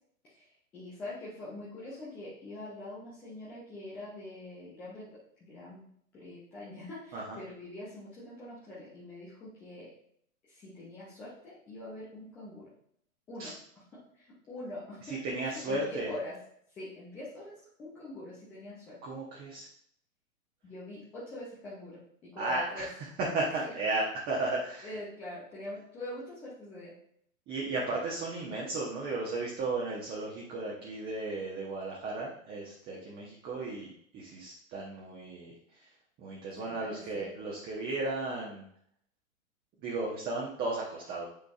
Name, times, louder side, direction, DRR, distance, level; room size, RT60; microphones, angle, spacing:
voice 1, 0.2-5.1 5.4-9.9 10.5-12.7 13.3-13.6 13.9-15.1 15.4-16.4 16.7-17.5 17.8-19.0 20.6-22.9 23.5-24.0 24.8-26.9 36.6-37.3, left 1 dB, 5° left, -10 dB, 0.3 m, -44 dB
voice 2, 15.1-16.1 19.0-19.7 22.4-22.9 23.3-24.9 27.5-35.5 36.2-38.6 39.8-41.2, right 2 dB, 20° right, -4 dB, 1.0 m, -34 dB
8.6 x 5.0 x 2.4 m, 0.67 s
figure-of-eight pair, 110°, 43 cm